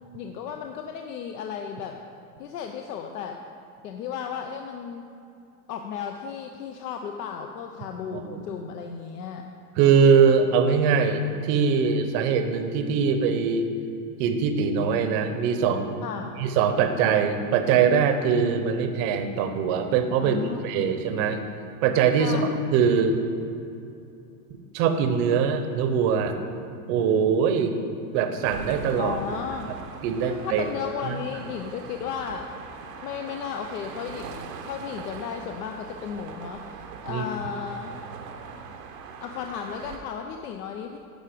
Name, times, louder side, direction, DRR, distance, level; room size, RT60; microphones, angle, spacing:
voice 1, 0.0-2.0 2.4-3.4 3.8-5.1 5.7-9.4 16.0-16.4 20.2-20.9 22.2-22.5 29.0-29.7 30.2-32.5 33.0-37.9 39.2-41.0, left 7 dB, 85° left, 4 dB, 0.7 m, -34 dB
voice 2, 8.1-8.5 9.8-13.7 14.2-15.9 16.4-21.4 21.8-22.4 22.7-23.2 24.7-26.4 26.9-27.7 28.1-29.2 30.0-30.6 31.0-31.1 37.1-37.3, right 6 dB, 40° right, 7 dB, 0.7 m, -22 dB
sound 1, 28.4-40.0, right 6 dB, 90° right, 1.0 m, -41 dB
10.5 x 5.1 x 5.0 m, 2.6 s
supercardioid pair, 150°, 47 cm